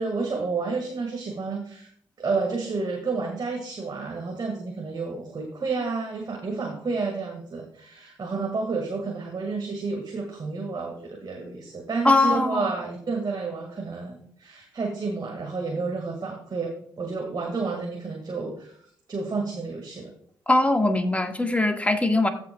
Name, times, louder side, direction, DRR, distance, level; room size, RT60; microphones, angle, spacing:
voice 1, 0.0-1.9 2.2-18.7 19.1-20.1, right 4 dB, 45° right, 1 dB, 1.9 m, -30 dB
voice 2, 12.0-12.7 20.5-22.3, left 2 dB, 15° left, 5 dB, 1.6 m, -21 dB
15.5 x 6.1 x 2.3 m, 0.62 s
hypercardioid pair, 40°, 10 cm